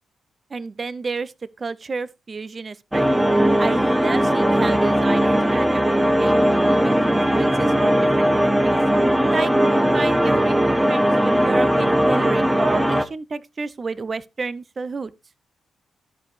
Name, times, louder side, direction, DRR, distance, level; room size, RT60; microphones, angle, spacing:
voice 1, 0.5-1.3 1.6-3.1 3.6-8.8 9.3-15.1, right 4 dB, 40° right, 0.5 m, -30 dB
sound 1, 2.9-13.0, equal, 5° right, 0.7 m, -19 dB
13.5 x 5.1 x 3.1 m
cardioid pair, 75°, 0 cm